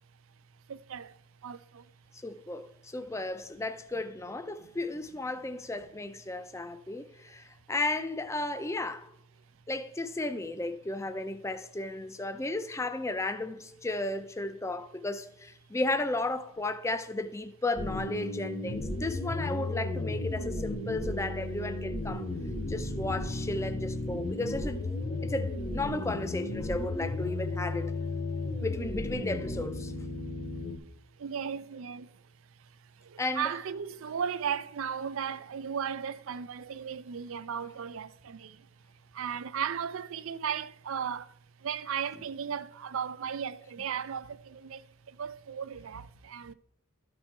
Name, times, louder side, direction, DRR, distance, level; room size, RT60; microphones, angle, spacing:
voice 1, 0.7-1.1 1.4-1.8 31.2-32.1 33.1-38.6 39.1-41.3 41.6-44.8 45.2-46.5, right 7 dB, 70° right, 0.4 m, -35 dB
voice 2, 2.1-9.1 9.7-22.3 22.7-24.8 25.2-27.9 28.6-29.9 33.2-33.6, left 2 dB, 15° left, 0.4 m, -34 dB
sound 1, 17.8-30.8, left 2 dB, 35° left, 0.9 m, -34 dB
12.5 x 4.3 x 4.4 m
head